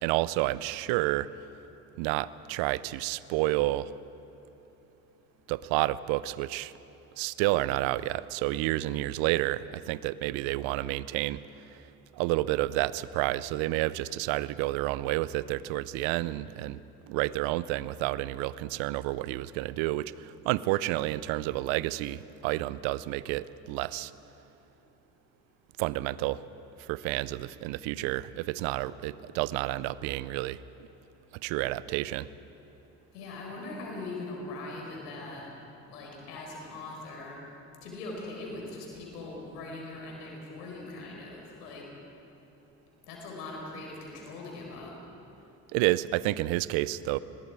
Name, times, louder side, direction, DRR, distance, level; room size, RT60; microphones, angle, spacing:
voice 1, 0.0-1.3 2.0-3.9 5.5-6.7 7.2-11.4 12.1-16.8 17.1-24.1 25.8-26.4 26.8-30.9 31.4-32.3 45.7-47.2, right 17 dB, 75° right, 18 dB, 0.7 m, -30 dB
voice 2, 33.1-35.4 35.9-37.4 37.8-41.8 43.1-44.9, left 2 dB, 90° left, -1 dB, 4.8 m, -41 dB
29.5 x 21.5 x 4.8 m, 3.0 s
hypercardioid pair, 55°, 46 cm